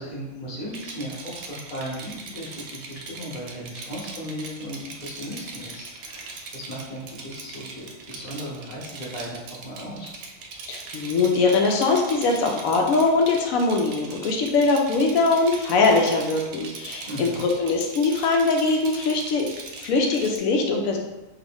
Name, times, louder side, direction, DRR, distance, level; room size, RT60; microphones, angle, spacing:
voice 1, 0.0-10.1 17.1-17.4, equal, 35° left, -5 dB, 1.0 m, -36 dB
Rattle, 0.7-20.4, right 4 dB, 65° right, 0.8 m, -40 dB
voice 2, 10.7-19.5 19.8-21.0, left 3 dB, 90° left, 1 dB, 1.0 m, -22 dB
3.7 x 2.6 x 3.4 m, 1.0 s
omnidirectional pair, 1.4 m